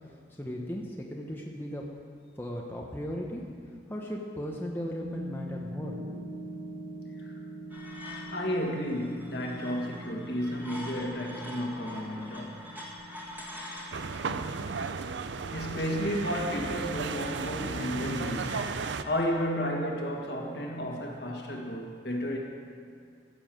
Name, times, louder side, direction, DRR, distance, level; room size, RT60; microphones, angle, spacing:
voice 1, 0.0-1.8 2.4-3.4 3.9-6.2, equal, 10° left, -1 dB, 0.9 m, -37 dB
sound 1, 3.7-3.8 5.0-16.7 18.0-18.1, right 1 dB, 90° right, 1.6 m, -45 dB
sound 2, 7.7-19.4, left 1 dB, 10° right, 1.9 m, -46 dB
voice 2, 8.3-12.6 14.3-14.5 15.5-18.8 19.0-22.4, equal, 55° left, 0 dB, 1.8 m, -32 dB
sound 3, 13.9-19.0, right 5 dB, 70° right, 0.5 m, -34 dB
15.0 x 7.1 x 7.7 m, 2.2 s
head